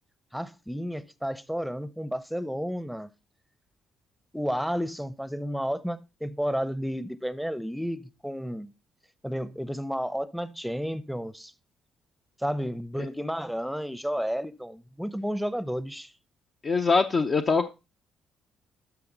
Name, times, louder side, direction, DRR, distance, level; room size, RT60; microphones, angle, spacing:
voice 1, 0.3-3.1 4.3-8.7 9.2-11.5 12.4-16.1, equal, ahead, 0.7 m, -32 dB
voice 2, 16.6-17.7, left 4 dB, 45° left, 0.8 m, -23 dB
11.5 x 6.1 x 3.9 m
hypercardioid pair, 60°, 0 cm